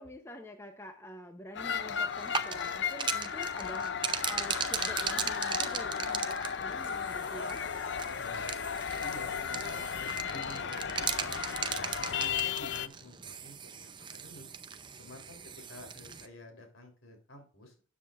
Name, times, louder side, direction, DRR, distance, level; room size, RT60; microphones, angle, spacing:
voice 1, 0.0-7.7, equal, 15° left, 5 dB, 0.8 m, -47 dB
sound 1, 1.5-12.9, left 7 dB, 55° left, 0.5 m, -35 dB
sound 2, 2.1-16.3, right 6 dB, 20° right, 0.5 m, -38 dB
voice 2, 8.2-8.5 9.0-14.4 14.9-15.4 15.7-17.7, left 1 dB, 70° left, 4 dB, 3.4 m, -51 dB
12.5 x 8.7 x 2.5 m, 0.39 s
head